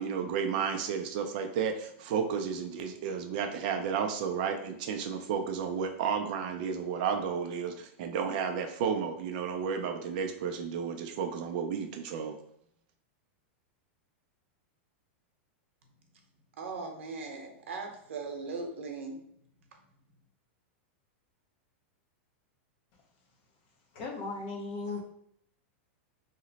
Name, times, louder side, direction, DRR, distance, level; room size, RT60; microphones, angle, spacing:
voice 1, 0.0-12.4, right 6 dB, 45° right, 5 dB, 0.3 m, -32 dB
voice 2, 16.6-19.3, right 4 dB, 90° right, 3 dB, 0.8 m, -39 dB
voice 3, 23.9-25.0, left 3 dB, 40° left, 1 dB, 0.7 m, -36 dB
2.9 x 2.0 x 3.9 m, 0.69 s
supercardioid pair, 165°, 7 cm